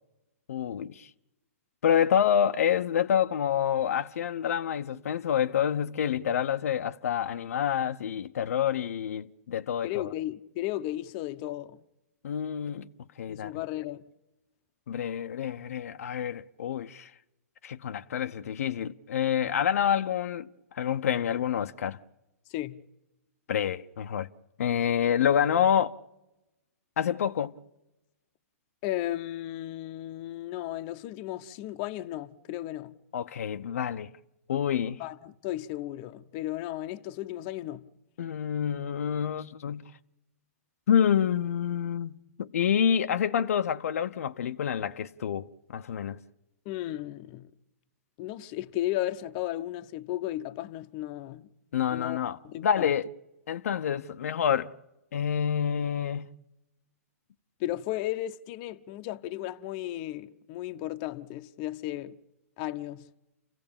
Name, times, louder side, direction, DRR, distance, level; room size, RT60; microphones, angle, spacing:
voice 1, 0.5-1.1 1.8-10.1 12.2-12.9 13.2-13.5 14.9-17.1 17.6-22.0 23.5-24.3 24.6-26.0 27.0-27.5 33.1-34.1 34.5-35.0 38.2-39.8 40.9-46.2 51.7-53.1 53.5-54.7 55.1-56.3, left 8 dB, 70° left, 0.8 m, -28 dB
voice 2, 9.8-11.8 13.3-14.1 22.5-22.8 28.8-32.9 35.0-37.8 46.6-47.5 48.2-51.5 51.9-52.9 57.6-62.2 62.6-63.1, left 14 dB, 35° left, 0.9 m, -35 dB
29.0 x 16.0 x 8.8 m
hypercardioid pair, 140°, 8 cm